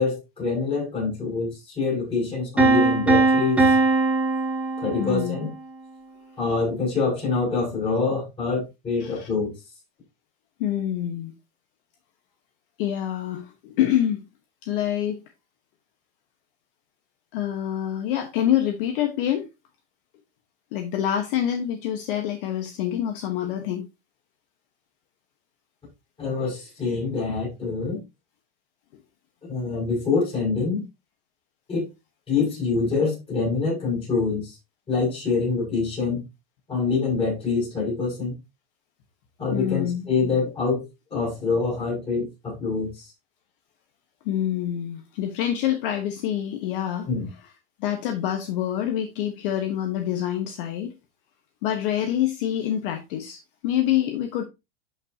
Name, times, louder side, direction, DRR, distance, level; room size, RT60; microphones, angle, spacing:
voice 1, 0.0-3.7 4.8-5.5 6.4-9.5 26.2-28.0 29.4-30.8 31.7-31.9 32.3-34.6 34.9-36.2 36.7-38.4 39.4-40.8 41.1-43.1 47.1-47.3, left 4 dB, 15° left, 6.4 m, -25 dB
Piano, 2.6-5.5, right 3 dB, 5° right, 2.1 m, -20 dB
voice 2, 5.0-5.4 9.0-9.3 10.6-11.3 12.8-14.2 14.6-15.2 17.3-19.4 20.7-23.9 39.5-40.0 44.2-47.1 47.8-50.9 51.6-54.4, left 11 dB, 50° left, 1.3 m, -26 dB
11.5 x 5.7 x 2.8 m
supercardioid pair, 175°, 33 cm